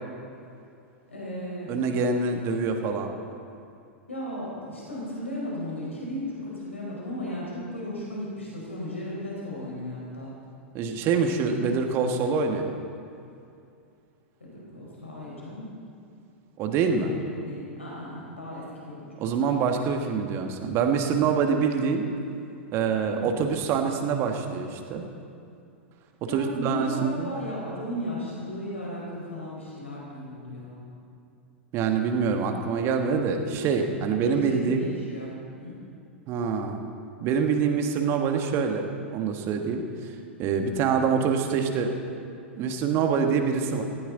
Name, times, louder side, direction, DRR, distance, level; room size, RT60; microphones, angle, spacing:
voice 1, 1.1-1.8 4.1-10.3 14.4-15.7 16.8-19.1 23.0-23.4 26.2-30.9 34.1-35.8 40.7-40.9, left 1 dB, 80° left, -5 dB, 4.7 m, -35 dB
voice 2, 1.7-3.1 10.7-12.7 16.6-17.2 19.2-22.1 22.7-25.0 26.3-27.3 31.7-34.8 36.3-36.8 37.2-40.1 40.4-41.9 42.6-43.8, right 5 dB, 35° right, 4 dB, 1.6 m, -25 dB
18.5 x 15.5 x 4.0 m, 2.5 s
figure-of-eight pair, 95°, 7 cm